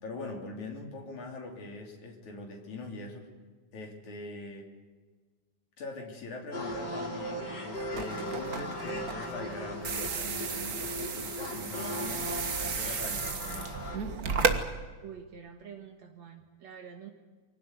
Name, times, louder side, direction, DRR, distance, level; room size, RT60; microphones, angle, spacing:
voice 1, 0.0-3.3 3.7-4.7 5.8-12.3 12.6-13.7, left 2 dB, 70° left, 2 dB, 4.5 m, -42 dB
sound 1, 6.5-14.0, left 1 dB, 30° left, 4.1 m, -38 dB
sound 2, 7.7-14.6, right 5 dB, 40° right, 1.4 m, -34 dB
voice 2, 15.0-17.1, right 7 dB, 65° right, 3 dB, 2.7 m, -47 dB
24.0 x 17.5 x 9.5 m, 1.4 s
omnidirectional pair, 3.5 m